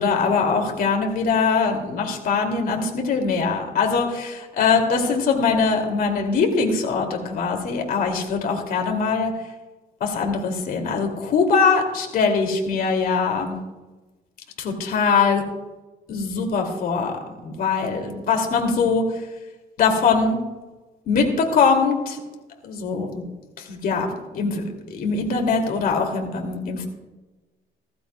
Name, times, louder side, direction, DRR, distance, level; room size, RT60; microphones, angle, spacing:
voice 1, 0.0-9.3 10.0-13.6 14.6-15.4 16.1-17.1 17.4-19.0 19.8-20.4 21.1-22.2 22.6-23.2 23.7-24.1 24.3-24.6 24.9-26.9, left 5 dB, 60° left, 3 dB, 2.5 m, -22 dB
16.0 x 14.5 x 2.2 m, 1.2 s
cardioid pair, 110°, 17 cm